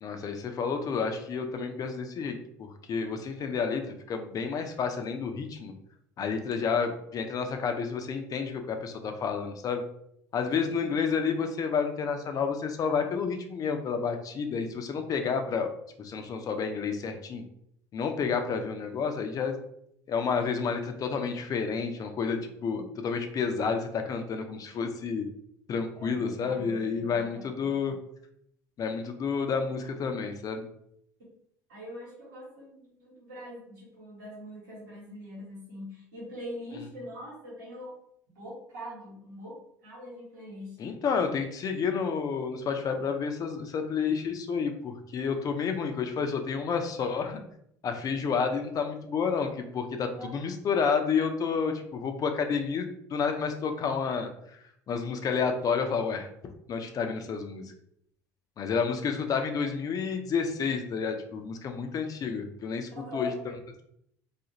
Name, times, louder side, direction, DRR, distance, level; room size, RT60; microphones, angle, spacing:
voice 1, 0.0-3.8 4.1-5.7 6.2-9.8 10.3-15.7 16.0-17.4 17.9-19.5 20.1-25.3 25.7-28.0 28.8-30.6 40.8-47.4 47.8-54.3 54.9-56.3 56.7-57.6 58.6-63.3, left 5 dB, 40° left, 6 dB, 0.5 m, -30 dB
voice 2, 26.0-27.8 31.7-37.9 38.3-40.8 50.1-50.4 62.9-63.4, left 1 dB, 85° right, -6 dB, 1.3 m, -43 dB
2.4 x 2.4 x 2.9 m, 0.72 s
hypercardioid pair, 70°, 9 cm